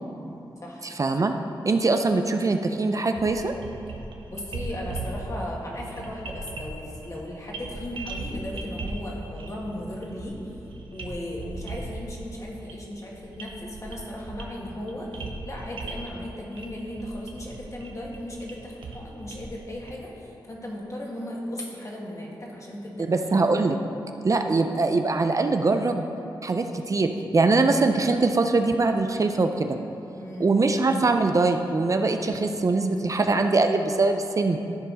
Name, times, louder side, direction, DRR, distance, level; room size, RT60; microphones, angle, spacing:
voice 1, 0.8-1.3 1.6-3.5 23.1-23.8 24.2-26.1 26.4-29.8 30.4-34.6, right 3 dB, 40° right, 6 dB, 0.5 m, -22 dB
sound 1, 3.1-19.9, right 2 dB, 85° right, 0.7 m, -38 dB
voice 2, 4.3-10.6 10.9-23.1 30.2-30.5, left 1 dB, 40° left, -3 dB, 1.9 m, -36 dB
13.5 x 4.5 x 4.0 m, 2.9 s
cardioid pair, 55°, 8 cm